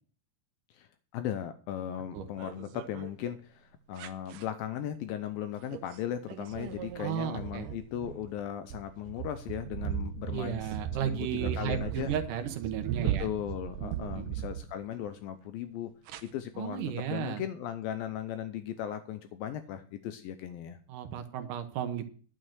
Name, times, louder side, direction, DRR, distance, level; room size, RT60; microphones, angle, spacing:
voice 1, 0.7-10.7 11.0-12.1 13.2-15.9 16.2-20.8, left 10 dB, 80° left, 9 dB, 2.1 m, -37 dB
sound 1, 2.2-3.1 4.0-4.4 5.7-6.0 6.3-15.1 16.1-16.2, right 9 dB, 85° right, 1.8 m, -37 dB
voice 2, 7.0-7.7 10.3-13.3 13.8-14.3 16.6-17.4 20.9-22.1, right 9 dB, 70° right, 7 dB, 2.2 m, -34 dB
11.0 x 6.5 x 6.1 m, 0.43 s
omnidirectional pair, 4.8 m